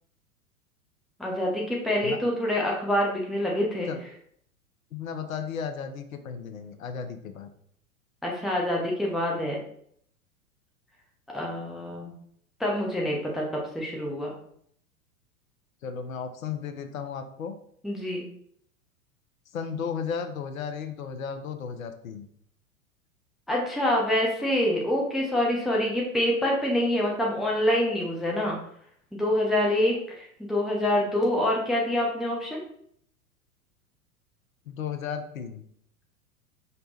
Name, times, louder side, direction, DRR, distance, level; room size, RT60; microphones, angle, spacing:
voice 1, 1.2-3.9 8.2-9.6 11.3-12.1 12.6-14.3 17.8-18.2 23.5-28.6 29.1-32.6, left 1 dB, ahead, -2 dB, 0.5 m, -26 dB
voice 2, 4.9-7.5 15.8-17.5 19.5-22.3 34.7-35.6, left 6 dB, 65° left, 7 dB, 0.7 m, -34 dB
5.4 x 2.2 x 4.0 m, 0.66 s
figure-of-eight pair, 95°, 43 cm